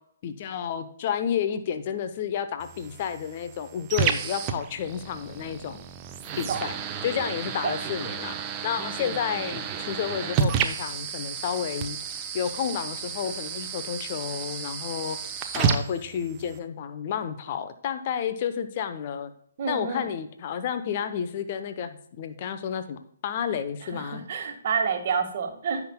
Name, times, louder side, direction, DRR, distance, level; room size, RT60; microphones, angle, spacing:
voice 1, 0.2-5.9 6.4-6.7 7.0-8.4 8.6-12.0 12.3-15.2 15.5-19.3 19.7-24.2, left 8 dB, 35° left, 10 dB, 0.8 m, -31 dB
sound 1, 2.6-16.6, right 7 dB, 20° right, 0.7 m, -31 dB
voice 2, 19.6-20.1 23.8-25.8, right 6 dB, 40° right, 3 dB, 1.6 m, -28 dB
15.5 x 5.9 x 2.2 m, 0.67 s
figure-of-eight pair, 130°, 0 cm